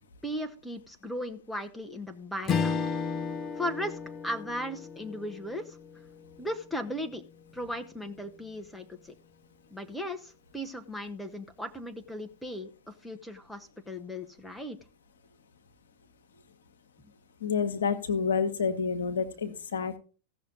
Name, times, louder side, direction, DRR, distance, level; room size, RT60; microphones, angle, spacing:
voice 1, 0.2-2.8 3.5-5.8 6.4-7.2 7.5-9.1 9.7-14.8, equal, 5° left, 5 dB, 1.4 m, -37 dB
Strum, 2.5-7.1, left 5 dB, 30° left, 1.1 m, -34 dB
voice 2, 17.4-20.0, left 6 dB, 65° left, 8 dB, 1.5 m, -29 dB
16.0 x 6.4 x 4.0 m, 0.37 s
figure-of-eight pair, 90°, 0 cm